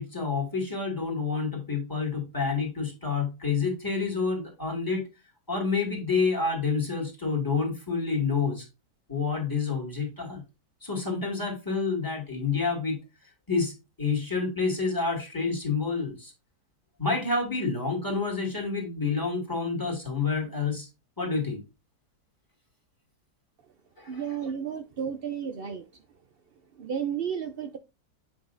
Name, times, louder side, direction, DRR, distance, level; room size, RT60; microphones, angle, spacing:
voice 1, 0.0-5.1 5.5-8.7 9.1-10.4 10.8-13.0 13.5-13.7 14.0-16.3 17.0-20.9 21.2-21.6 24.0-24.2, left 4 dB, 10° left, 2.0 m, -28 dB
voice 2, 24.1-25.9 26.7-27.8, right 7 dB, 85° right, 0.5 m, -32 dB
7.7 x 5.4 x 2.6 m
omnidirectional pair, 1.8 m